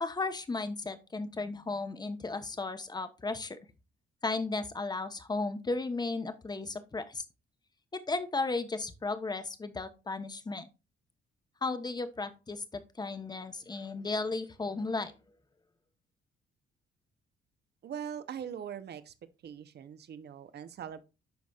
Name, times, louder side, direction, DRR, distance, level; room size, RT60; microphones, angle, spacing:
voice 1, 0.0-3.6 4.2-7.2 8.1-10.7 11.6-15.1, left 3 dB, 20° left, 0.9 m, -35 dB
voice 2, 17.8-19.1 19.4-21.0, right 8 dB, 55° right, 0.8 m, -41 dB
11.5 x 4.1 x 2.4 m
cardioid pair, 90°, 20 cm